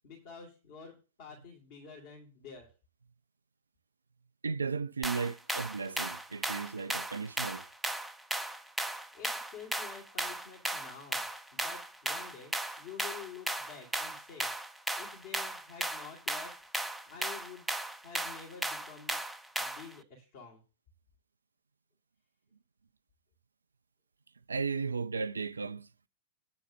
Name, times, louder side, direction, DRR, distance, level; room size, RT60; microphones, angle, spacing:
voice 1, 0.0-2.7 9.1-14.5 14.9-16.6 17.0-17.7 18.0-19.1 19.6-20.6, left 6 dB, 50° left, 3.0 m, -49 dB
voice 2, 4.4-7.7 24.5-25.9, right 5 dB, 75° right, 0.4 m, -35 dB
sound 1, 5.0-19.9, right 1 dB, 5° right, 0.6 m, -36 dB
9.1 x 5.1 x 6.4 m
figure-of-eight pair, 95°, 0 cm